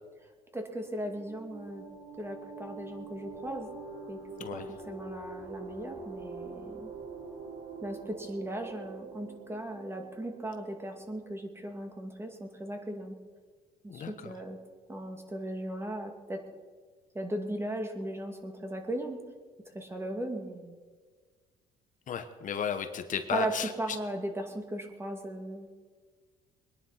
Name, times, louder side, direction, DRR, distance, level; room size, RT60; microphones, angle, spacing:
voice 1, 0.5-1.9 2.2-3.7 4.1-4.2 4.5-6.9 7.8-13.2 13.8-14.6 14.9-16.4 17.1-19.2 19.7-20.8 23.3-25.7, right 1 dB, 15° right, 4 dB, 2.3 m, -37 dB
sound 1, 0.8-11.1, right 4 dB, 75° right, 4.1 m, -45 dB
voice 2, 13.9-14.3 22.1-23.7, left 8 dB, 50° left, 9 dB, 1.1 m, -34 dB
22.5 x 10.5 x 5.8 m, 1.5 s
cardioid pair, 110°, 17 cm